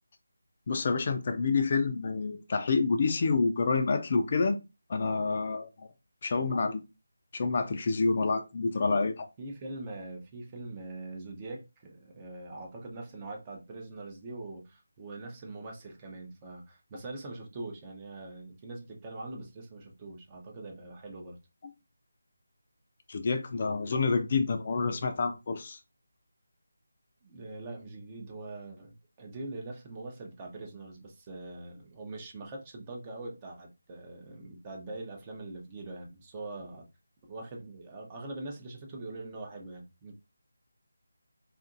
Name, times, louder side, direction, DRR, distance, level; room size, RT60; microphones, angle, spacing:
voice 1, 0.7-4.6 4.9-5.9 6.2-6.8 7.3-9.3 21.6-21.7 23.1-25.8, left 4 dB, 40° left, 0.4 m, -28 dB
voice 2, 9.4-21.4 27.2-36.9 37.3-40.1, right 2 dB, 20° right, 0.6 m, -43 dB
2.8 x 2.5 x 2.4 m
figure-of-eight pair, 165°, 0 cm